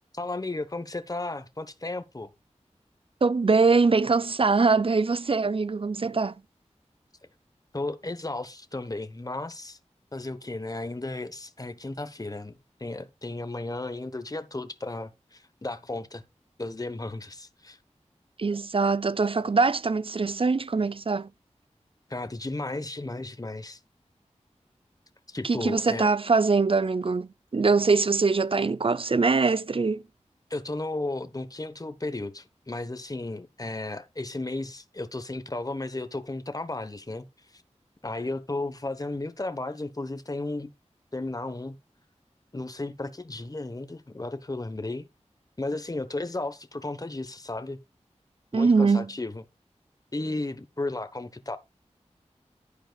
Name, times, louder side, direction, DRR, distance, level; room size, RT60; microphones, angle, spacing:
voice 1, 0.1-2.3 7.7-9.8 10.1-16.2 16.6-17.8 22.1-23.8 25.3-26.1 30.5-37.3 37.5-37.6 38.0-40.7 41.1-41.8 42.5-45.1 45.6-47.8 48.5-49.4 50.1-51.6, left 2 dB, 30° left, 1.1 m, -34 dB
voice 2, 3.2-6.3 18.4-21.3 25.4-30.0 48.5-49.1, right 4 dB, 50° right, 0.5 m, -23 dB
10.5 x 9.8 x 2.4 m
wide cardioid pair, 50°, 12 cm